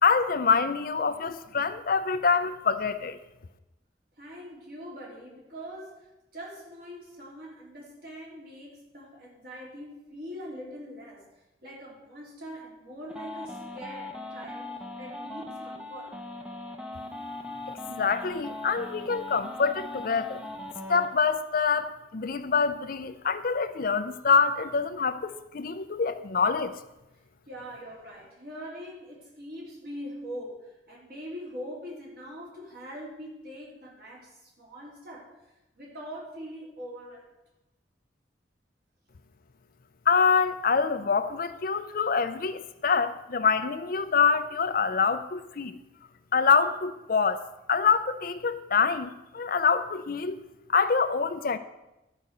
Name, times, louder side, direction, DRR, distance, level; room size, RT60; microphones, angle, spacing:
voice 1, 0.0-3.2 17.7-20.4 20.9-26.7 40.1-45.8 46.3-47.4 47.7-50.4 50.7-51.6, left 5 dB, 50° left, 0.5 m, -25 dB
voice 2, 4.2-11.3 11.6-14.7 15.0-16.2 27.5-35.4 35.7-37.3, equal, 55° right, 3.6 m, -42 dB
sound 1, 13.1-21.1, left 2 dB, 5° right, 0.8 m, -39 dB
12.0 x 5.1 x 6.7 m
head